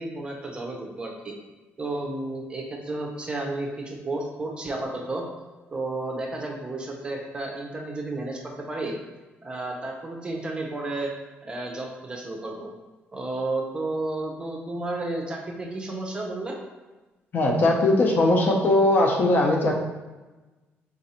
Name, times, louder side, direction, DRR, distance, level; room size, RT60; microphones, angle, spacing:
voice 1, 0.0-1.3 1.8-5.3 5.7-8.9 9.4-11.1 11.4-12.7 13.1-16.6, right 2 dB, 20° right, 0 dB, 0.7 m, -32 dB
voice 2, 17.3-19.7, left 1 dB, 45° left, 0 dB, 0.7 m, -20 dB
3.9 x 2.6 x 4.3 m, 1.2 s
cardioid pair, 135°, 5 cm